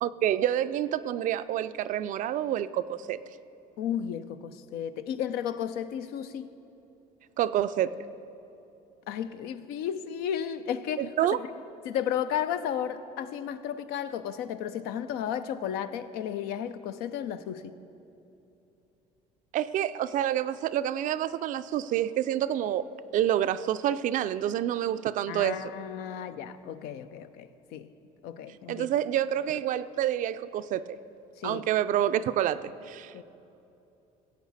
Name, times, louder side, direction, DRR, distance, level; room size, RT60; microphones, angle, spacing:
voice 1, 0.0-3.2 7.4-8.0 11.0-11.4 19.5-22.9 23.1-25.6 28.7-31.0 31.4-33.1, right 11 dB, 55° right, 0.4 m, -28 dB
voice 2, 3.8-6.5 9.1-11.1 11.4-11.5 11.8-17.8 25.3-27.9 28.2-28.9 31.4-31.6 33.1-33.2, left 9 dB, 75° left, 0.6 m, -33 dB
17.0 x 8.4 x 4.1 m
supercardioid pair, 95°, 16 cm